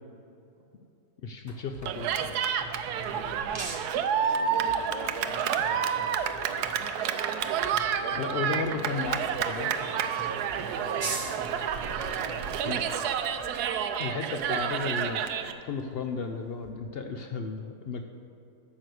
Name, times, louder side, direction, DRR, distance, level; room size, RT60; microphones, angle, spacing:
voice 1, 1.2-2.3 8.2-9.2 9.5-9.7 12.6-12.8 14.0-18.0, left 4 dB, 75° left, 5 dB, 0.5 m, -34 dB
sound 1, 1.5-13.5, right 2 dB, 15° left, 0.9 m, -48 dB
Cheering, 1.9-15.5, right 8 dB, 80° right, 1.1 m, -29 dB
sound 2, 2.2-16.7, right 3 dB, 25° right, 0.6 m, -46 dB
voice 2, 4.1-7.3 8.0-8.9 10.7-11.4 11.9-13.0, right 3 dB, 55° right, 1 dB, 1.4 m, -41 dB
9.1 x 6.5 x 6.3 m, 2.7 s
omnidirectional pair, 1.6 m